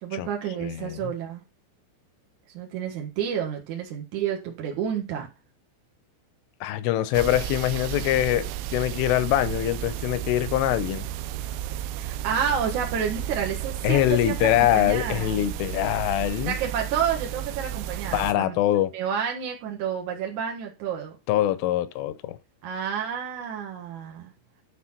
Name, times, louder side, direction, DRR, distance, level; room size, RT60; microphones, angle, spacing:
voice 1, 0.0-1.4 2.5-5.3 12.0-15.4 16.5-18.6 18.9-21.2 22.6-24.3, right 8 dB, 75° right, 1.8 m, -30 dB
voice 2, 0.6-1.1 6.6-11.1 13.8-16.6 18.1-18.9 21.3-22.4, left 13 dB, 80° left, 3.1 m, -24 dB
sound 1, 7.1-18.3, right 11 dB, 90° right, 3.3 m, -33 dB
11.5 x 4.1 x 5.7 m
omnidirectional pair, 5.9 m